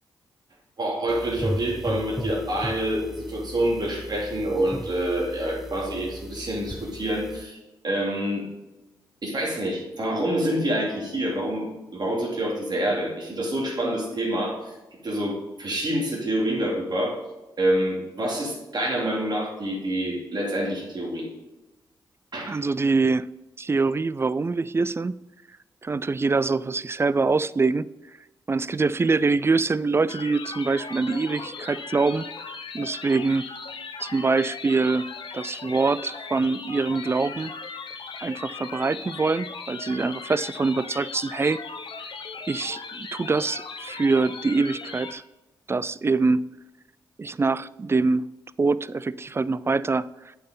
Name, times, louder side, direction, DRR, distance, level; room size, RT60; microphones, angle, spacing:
voice 1, 0.8-7.6 7.8-8.4 9.2-14.7 15.0-17.2 17.6-21.3 22.3-22.6, right 1 dB, 45° right, 2.9 m, -27 dB
sound 1, 1.1-7.4, equal, 5° right, 1.0 m, -36 dB
voice 2, 22.5-23.3 23.6-25.2 25.8-27.9 28.5-32.3 32.7-33.5 34.0-37.5 38.2-41.6 42.5-45.2 45.7-46.5 47.2-48.3 48.6-50.1, right 3 dB, 25° right, 0.3 m, -24 dB
sound 2, 30.1-45.1, left 5 dB, 55° left, 0.9 m, -38 dB
8.4 x 5.8 x 3.9 m
hypercardioid pair, 40°, 10 cm